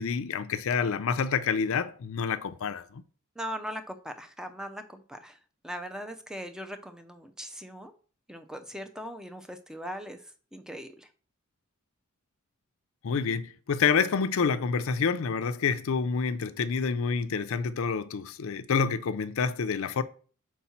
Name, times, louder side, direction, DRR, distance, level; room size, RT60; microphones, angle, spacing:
voice 1, 0.0-3.0 13.0-20.0, left 5 dB, 70° left, 0.5 m, -28 dB
voice 2, 3.4-5.4 5.6-7.9 8.3-10.2 10.5-11.1, equal, 5° right, 0.5 m, -39 dB
4.6 x 4.2 x 5.8 m
head